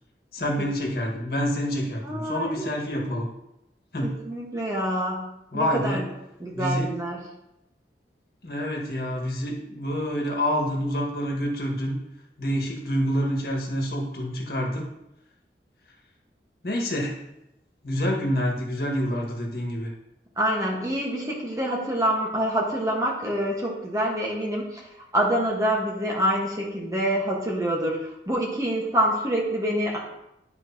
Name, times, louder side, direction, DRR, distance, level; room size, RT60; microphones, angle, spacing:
voice 1, 0.3-3.3 3.9-4.1 5.5-6.0 6.5-6.9 8.4-12.0 12.4-14.9 16.6-17.2 17.8-19.9, equal, 60° left, -1 dB, 1.7 m, -27 dB
voice 2, 2.0-2.7 4.0-6.0 6.4-7.2 20.4-30.0, right 1 dB, 20° right, -2 dB, 1.3 m, -26 dB
12.5 x 4.7 x 2.8 m, 0.86 s
head